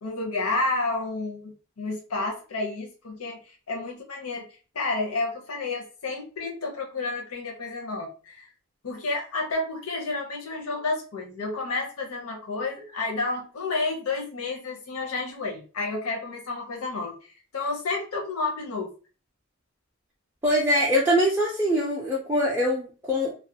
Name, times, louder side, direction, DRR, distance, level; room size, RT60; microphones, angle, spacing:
voice 1, 0.0-4.5 4.7-8.4 8.8-18.9, left 3 dB, 75° left, 1 dB, 0.6 m, -30 dB
voice 2, 20.4-23.3, equal, 10° right, -5 dB, 0.3 m, -23 dB
2.3 x 2.1 x 2.6 m, 0.37 s
head